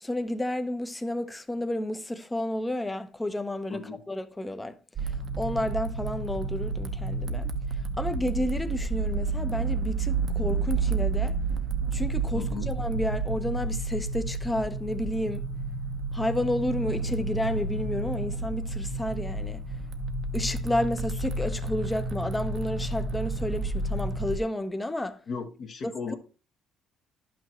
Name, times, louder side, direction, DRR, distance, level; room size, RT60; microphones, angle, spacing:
voice 1, 0.0-3.8 4.1-4.7 5.0-11.4 11.9-15.4 16.1-19.6 20.3-25.2 25.8-26.2, left 1 dB, 10° left, 0.8 m, -31 dB
voice 2, 3.7-4.0 12.3-12.7 25.3-26.2, left 5 dB, 55° left, 1.2 m, -36 dB
sound 1, 5.0-24.4, right 3 dB, 55° right, 0.9 m, -30 dB
11.0 x 5.9 x 3.1 m
cardioid pair, 100°, 0 cm